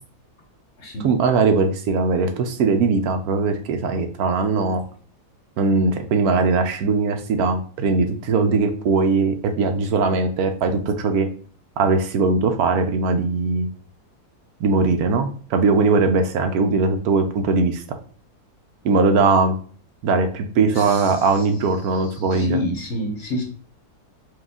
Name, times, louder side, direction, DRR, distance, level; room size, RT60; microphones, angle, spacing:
voice 1, 1.0-4.8 5.6-11.3 11.8-13.7 14.6-17.8 18.8-19.5 20.0-22.6, right 4 dB, 70° right, 6 dB, 1.0 m, -20 dB
voice 2, 20.7-21.5 21.8-23.4, left 1 dB, 55° left, 2 dB, 1.0 m, -29 dB
4.8 x 2.3 x 3.6 m, 0.43 s
omnidirectional pair, 1.7 m